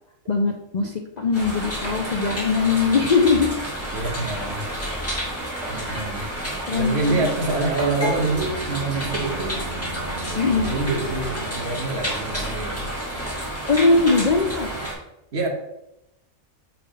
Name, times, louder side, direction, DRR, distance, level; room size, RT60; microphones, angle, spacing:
voice 1, 0.3-3.6 4.2-4.4 5.7-5.9 6.7-7.3 10.3-10.7 13.7-14.7, left 4 dB, 75° left, 4 dB, 0.4 m, -21 dB
sound 1, 1.3-14.9, right 1 dB, 10° left, 2.0 m, -30 dB
voice 2, 3.9-4.7 5.7-6.3 6.7-9.6 10.5-12.9 15.3-15.5, right 3 dB, 50° right, 2 dB, 1.2 m, -26 dB
Bowed string instrument, 8.1-12.1, right 2 dB, 85° right, 1.2 m, -38 dB
5.4 x 4.3 x 5.1 m, 0.88 s
omnidirectional pair, 1.5 m